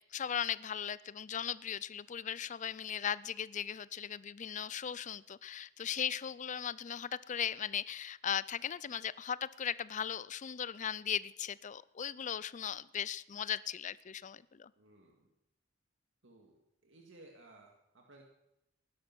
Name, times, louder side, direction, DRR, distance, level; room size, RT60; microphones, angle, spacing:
voice 1, 0.1-14.7, left 8 dB, 40° left, 19 dB, 0.5 m, -38 dB
voice 2, 14.8-15.3 16.2-18.2, right 2 dB, 75° right, 0 dB, 2.1 m, -59 dB
17.0 x 11.5 x 6.0 m, 0.87 s
head